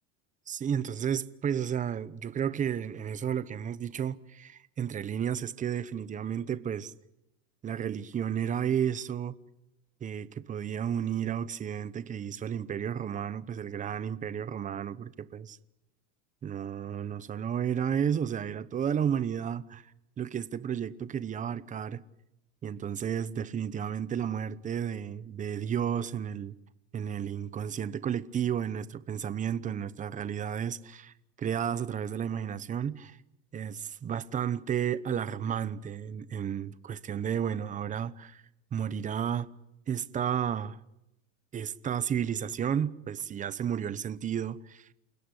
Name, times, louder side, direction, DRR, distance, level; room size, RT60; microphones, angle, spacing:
voice 1, 0.5-6.9 7.6-9.3 10.0-15.6 16.4-19.9 20.2-22.0 22.6-26.6 26.9-33.2 33.5-38.4 38.7-39.5 39.9-40.8 41.5-44.9, right 8 dB, 20° right, 0.9 m, -32 dB
29.0 x 17.0 x 9.9 m
cardioid pair, 160°, 39 cm